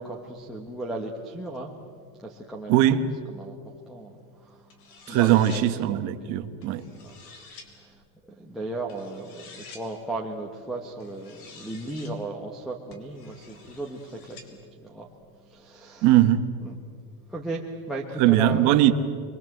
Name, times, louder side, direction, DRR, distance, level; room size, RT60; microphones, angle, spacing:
voice 1, 0.0-1.7 2.2-2.9 3.3-3.5 3.9-4.7 5.1-6.4 7.0-7.2 7.7-8.0 8.3-15.1 15.4-16.1 16.6-16.7 17.3-18.7, right 2 dB, ahead, 3 dB, 1.2 m, -36 dB
voice 2, 2.7-3.0 5.1-6.8 16.0-16.4 18.2-18.9, right 13 dB, 35° right, 9 dB, 1.2 m, -20 dB
sound 1, 4.7-5.7 6.6-7.7 8.9-9.9 11.0-12.1 12.9-14.5, left 4 dB, 75° left, 4.4 m, -48 dB
28.5 x 22.5 x 7.8 m, 2.1 s
supercardioid pair, 175°, 46 cm